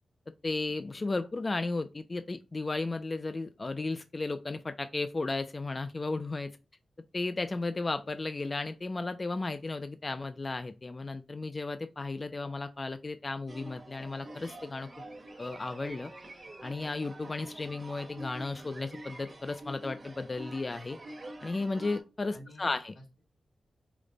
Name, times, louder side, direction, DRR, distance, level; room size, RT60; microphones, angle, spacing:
voice 1, 0.4-6.5 7.1-14.9 15.4-16.1 16.6-21.0 21.4-22.9, left 3 dB, 30° left, 9 dB, 0.3 m, -34 dB
sound 1, 13.5-22.0, right 1 dB, 35° right, 1.3 m, -47 dB
voice 2, 22.3-23.2, left 1 dB, 85° left, 0 dB, 2.1 m, -52 dB
5.0 x 2.1 x 3.7 m, 0.29 s
wide cardioid pair, 125°, 0 cm